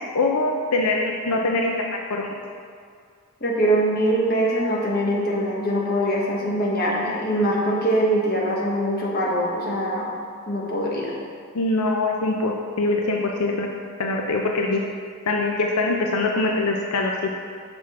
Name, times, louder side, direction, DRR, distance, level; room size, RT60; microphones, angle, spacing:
voice 1, 0.1-2.3 11.5-13.7 14.0-14.8 15.3-17.3, left 2 dB, 85° left, 1 dB, 0.6 m, -23 dB
voice 2, 3.4-10.1 10.5-11.1, right 1 dB, 45° left, -3 dB, 1.2 m, -23 dB
6.2 x 6.0 x 4.2 m, 2.2 s
head